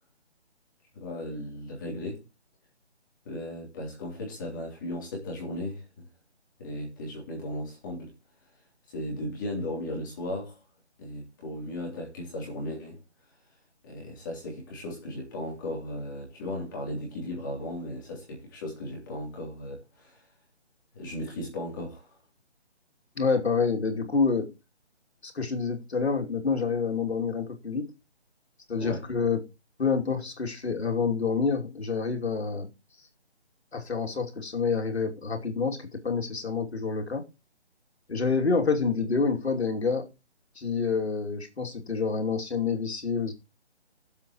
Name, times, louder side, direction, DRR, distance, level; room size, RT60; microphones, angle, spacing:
voice 1, 0.9-2.2 3.2-6.1 6.6-8.1 8.9-10.6 11.0-13.0 13.8-20.3 20.9-22.2 28.8-29.1, left 1 dB, 20° left, 3.2 m, -36 dB
voice 2, 23.2-24.5 25.2-27.9 28.7-29.4 29.8-32.7 33.7-37.3 38.1-40.1 40.6-43.3, left 5 dB, 70° left, 2.8 m, -27 dB
21.0 x 7.6 x 3.1 m
hypercardioid pair, 170°, 34 cm